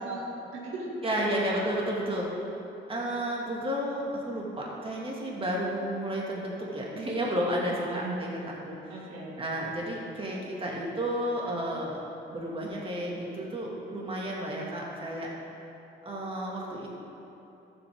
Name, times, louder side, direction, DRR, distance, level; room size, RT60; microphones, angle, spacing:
voice 1, 0.0-1.6 7.8-8.3 8.9-9.4, right 2 dB, 80° right, -4 dB, 2.1 m, -37 dB
voice 2, 1.0-2.3 2.9-9.0 9.4-12.0 12.3-15.3 16.0-16.9, equal, 25° right, -4 dB, 2.1 m, -32 dB
13.0 x 7.8 x 3.7 m, 3.0 s
cardioid pair, 90°, 20 cm